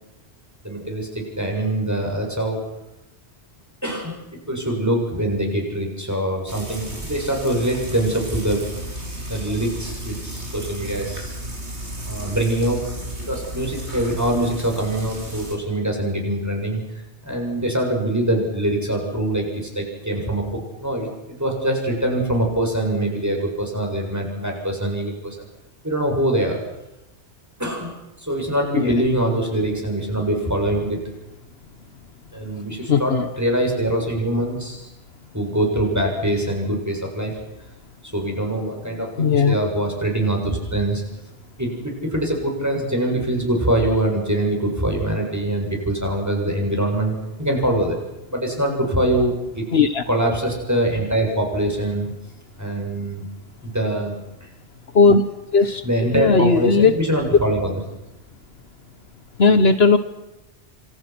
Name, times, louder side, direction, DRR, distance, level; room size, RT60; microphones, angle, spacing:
voice 1, 0.6-2.6 3.8-8.7 9.3-11.4 12.1-12.8 13.2-16.8 17.2-25.5 25.8-26.6 27.6-27.9 28.2-31.0 32.3-34.9 35.3-37.4 38.1-41.0 41.6-47.9 48.3-49.6 50.1-52.1 52.6-53.2 53.6-54.5 55.8-57.7, right 1 dB, 15° right, 1 dB, 7.6 m, -23 dB
Frying (food), 6.5-15.6, right 1 dB, 75° right, 6.0 m, -33 dB
voice 2, 32.9-33.3 39.2-39.6 49.7-50.0 54.9-55.2 55.5-57.0 59.4-60.0, left 4 dB, 65° left, 11 dB, 1.4 m, -16 dB
29.0 x 25.5 x 6.2 m, 0.94 s
omnidirectional pair, 1.2 m